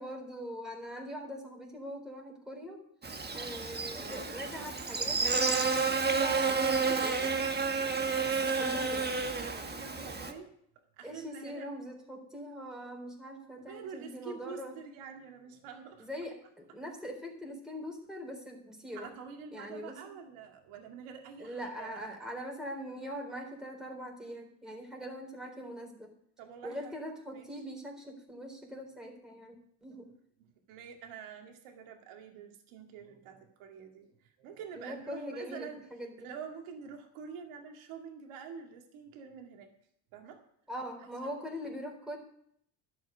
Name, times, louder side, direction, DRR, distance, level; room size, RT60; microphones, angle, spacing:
voice 1, 0.0-2.8 3.3-5.2 6.1-7.5 8.6-9.1 11.0-14.7 16.0-19.2 19.5-20.0 21.4-26.1 26.6-29.5 29.8-30.1 34.7-36.3 40.7-42.2, equal, ahead, 0 dB, 4.1 m, -42 dB
Buzz, 3.0-10.3, right 4 dB, 20° right, 1.4 m, -30 dB
voice 2, 9.4-10.5 11.0-11.7 13.7-16.1 18.9-22.1 26.4-26.9 27.3-27.5 30.7-35.8 36.2-39.7 40.1-40.4 41.0-41.3, right 6 dB, 85° right, 3 dB, 2.2 m, -47 dB
12.0 x 6.2 x 9.4 m, 0.70 s
cardioid pair, 85°, 48 cm